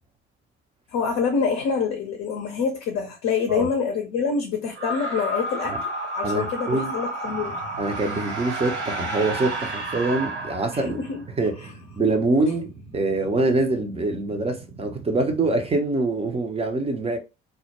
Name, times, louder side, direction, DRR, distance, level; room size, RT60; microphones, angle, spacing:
voice 1, 0.9-7.6 10.7-11.2 11.6-11.7, left 5 dB, 50° left, 0.6 m, -26 dB
sound 1, 4.7-11.2, right 1 dB, 90° right, 0.5 m, -31 dB
voice 2, 6.2-6.9 7.8-11.0 11.4-11.7 12.0-12.7 12.9-17.2, right 2 dB, 20° right, 0.5 m, -24 dB
sound 2, 7.2-15.8, right 3 dB, 55° right, 0.7 m, -44 dB
2.1 x 2.1 x 2.9 m
figure-of-eight pair, 50°, 33 cm